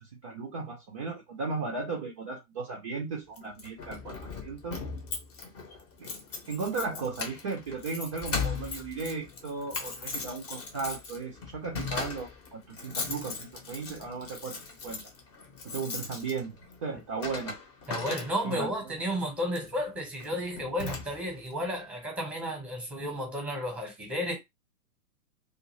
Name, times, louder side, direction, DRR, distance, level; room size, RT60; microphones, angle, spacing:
voice 1, 0.2-4.8 6.0-6.1 6.5-15.0 15.6-17.6 18.4-18.9, right 4 dB, 25° right, 0.4 m, -36 dB
Keys jangling, 3.4-18.7 19.5-19.7 20.2-20.3 20.6-21.5, left 5 dB, 20° left, 0.7 m, -38 dB
voice 2, 17.9-24.4, equal, 5° right, 0.8 m, -32 dB
2.5 x 2.4 x 3.0 m
hypercardioid pair, 125°, 47 cm